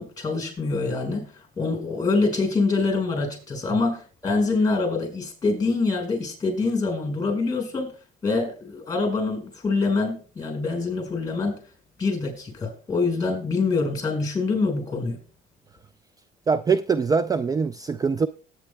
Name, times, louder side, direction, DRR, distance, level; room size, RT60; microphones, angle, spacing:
voice 1, 0.0-7.9 8.2-11.6 12.0-15.2, left 3 dB, 25° left, 5.3 m, -25 dB
voice 2, 16.5-18.3, right 5 dB, 20° right, 0.4 m, -23 dB
19.5 x 9.1 x 2.2 m
cardioid pair, 110°, 17 cm